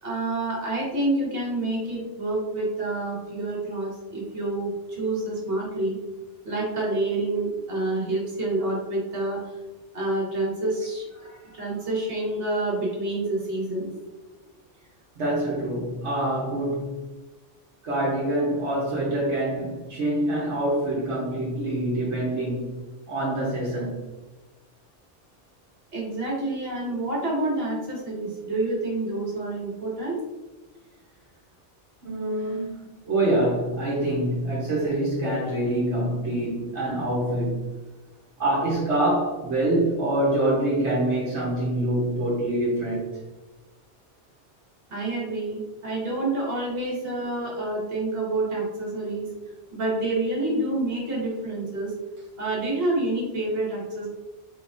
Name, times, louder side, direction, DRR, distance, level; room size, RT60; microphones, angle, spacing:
voice 1, 0.0-6.0 6.4-9.4 9.9-11.1 11.5-13.9 25.9-30.2 44.9-49.3 49.7-51.9 52.4-54.1, right 2 dB, 55° right, -4 dB, 1.6 m, -28 dB
voice 2, 11.2-11.6 15.2-17.0 17.8-22.7 23.1-24.0 32.0-32.7 33.0-37.6 38.4-43.1, right 1 dB, 70° right, -6 dB, 1.3 m, -25 dB
4.4 x 3.8 x 2.5 m, 1.2 s
omnidirectional pair, 1.2 m